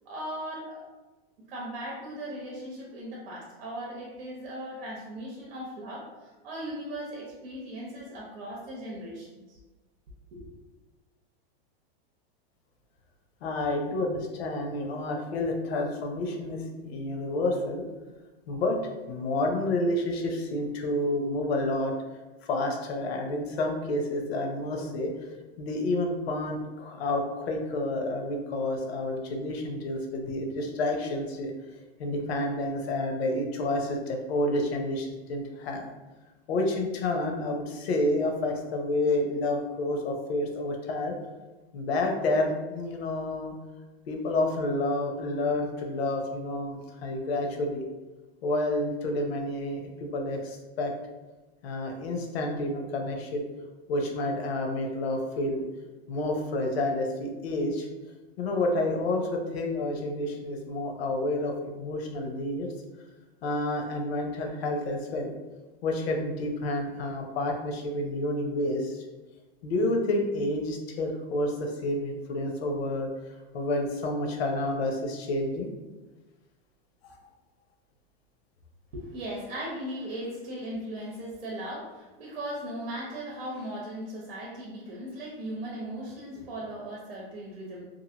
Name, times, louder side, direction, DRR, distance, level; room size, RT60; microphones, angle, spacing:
voice 1, 0.0-0.8 1.5-9.6 10.3-10.5 78.9-87.8, right 1 dB, 75° right, -3 dB, 0.8 m, -38 dB
voice 2, 13.4-17.8 18.5-18.8 19.1-22.0 22.4-25.1 25.6-31.5 32.0-35.9 36.5-41.2 41.7-43.6 44.1-47.8 48.4-50.9 51.6-53.4 53.9-55.7 56.1-57.9 58.4-62.7 63.4-65.3 65.8-69.0 69.6-73.1 73.5-75.7 77.0-77.2, left 1 dB, 80° left, 2 dB, 0.7 m, -29 dB
2.8 x 2.5 x 2.8 m, 1.2 s
supercardioid pair, 160°, 31 cm